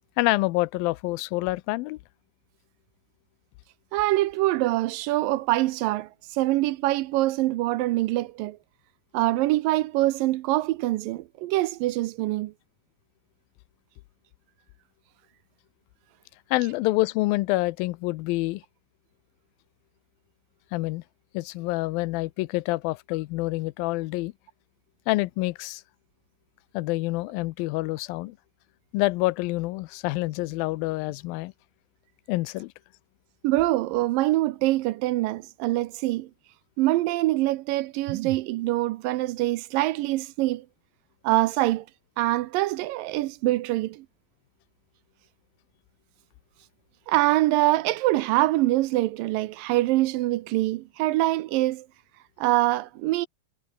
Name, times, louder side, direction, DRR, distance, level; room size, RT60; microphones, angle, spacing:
voice 1, 0.2-2.0 16.5-18.6 20.7-21.0 21.3-24.3 25.1-25.8 26.7-28.4 28.9-31.5 32.3-32.7, left 20 dB, 85° left, 2.4 m, -27 dB
voice 2, 3.9-8.6 9.1-12.5 33.4-36.3 36.8-40.7 41.2-41.9 42.2-44.1 47.1-51.9 52.4-53.3, right 17 dB, 80° right, 2.3 m, -24 dB
omnidirectional pair, 4.2 m